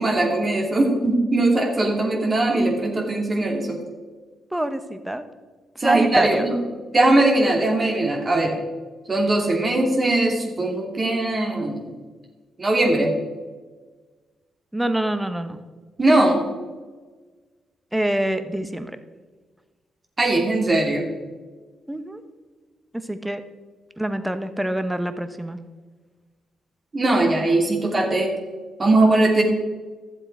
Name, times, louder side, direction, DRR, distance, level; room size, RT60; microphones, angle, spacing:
voice 1, 0.0-3.8 5.8-6.5 6.9-8.6 9.1-11.9 12.6-13.1 16.0-16.4 20.2-21.1 26.9-28.3 28.8-29.4, right 2 dB, 35° right, 0 dB, 2.7 m, -20 dB
voice 2, 4.5-5.2 5.8-6.4 14.7-15.6 17.9-19.0 21.9-22.2 22.9-23.4 24.0-25.6, right 1 dB, 10° right, 10 dB, 1.1 m, -26 dB
12.5 x 7.6 x 4.7 m, 1.4 s
hypercardioid pair, 45°, 0 cm